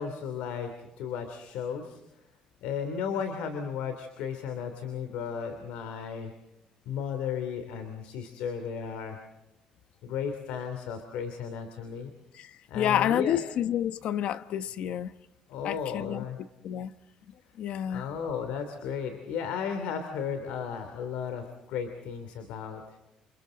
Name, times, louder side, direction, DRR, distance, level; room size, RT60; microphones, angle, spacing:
voice 1, 0.0-2.0 2.6-6.3 6.8-9.2 10.0-12.1 12.7-13.4 15.5-16.4 17.9-23.0, left 7 dB, 90° left, 3.0 m, -34 dB
voice 2, 12.7-15.1 15.6-16.2 16.6-16.9 17.6-18.1, left 10 dB, 70° left, 1.0 m, -29 dB
29.0 x 28.0 x 3.9 m
cardioid pair, 110°, 2 cm